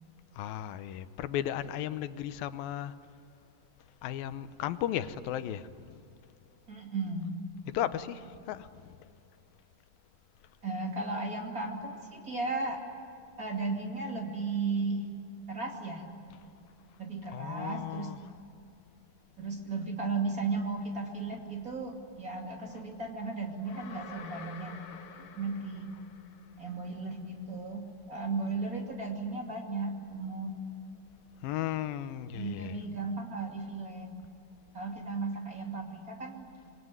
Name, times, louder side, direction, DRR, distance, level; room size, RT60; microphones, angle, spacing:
voice 1, 0.4-2.9 4.0-6.0 7.7-8.9 17.3-18.2 31.4-32.8, left 11 dB, 90° left, 12 dB, 2.7 m, -35 dB
voice 2, 6.7-7.3 10.6-12.8 13.4-15.1 15.5-16.0 17.0-18.1 19.4-24.7 25.2-25.9 26.6-30.6 32.3-34.1 34.7-36.5, right 3 dB, 25° right, 1 dB, 2.6 m, -35 dB
sound 1, 23.7-26.8, left 6 dB, 75° left, 3.9 m, -49 dB
26.5 x 22.5 x 9.7 m, 2.7 s
omnidirectional pair, 4.0 m